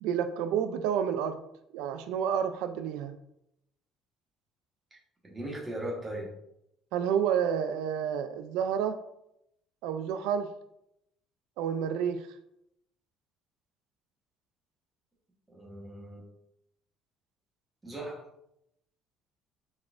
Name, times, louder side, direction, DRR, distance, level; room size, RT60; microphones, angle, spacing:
voice 1, 0.0-1.4 1.7-3.1 6.9-9.0 9.8-10.5 11.6-12.3, right 8 dB, 85° right, 9 dB, 0.3 m, -29 dB
voice 2, 5.2-6.3 15.5-16.2 17.8-18.2, right 1 dB, 15° right, -3 dB, 1.2 m, -38 dB
4.3 x 4.0 x 2.5 m, 0.80 s
cardioid pair, 145°, 0 cm